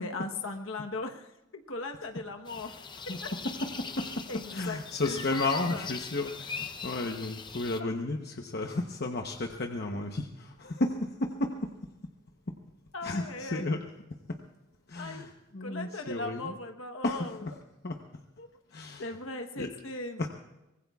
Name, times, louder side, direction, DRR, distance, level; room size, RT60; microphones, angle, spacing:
voice 1, 0.0-2.7 3.2-3.3 4.3-4.8 5.1-5.9 12.9-13.7 14.9-15.3 15.6-17.5 18.4-18.5 19.0-20.2, left 2 dB, 75° left, 4 dB, 1.1 m, -38 dB
sound 1, 2.5-7.8, left 5 dB, 20° left, 0.7 m, -41 dB
voice 2, 3.4-4.3 4.5-11.7 13.0-13.8 14.3-14.4 14.9-16.6 17.0-17.5 17.8-18.0 18.7-19.0 19.6-19.7 20.2-20.3, left 2 dB, 50° left, 3 dB, 1.0 m, -33 dB
24.0 x 19.5 x 2.4 m, 0.97 s
head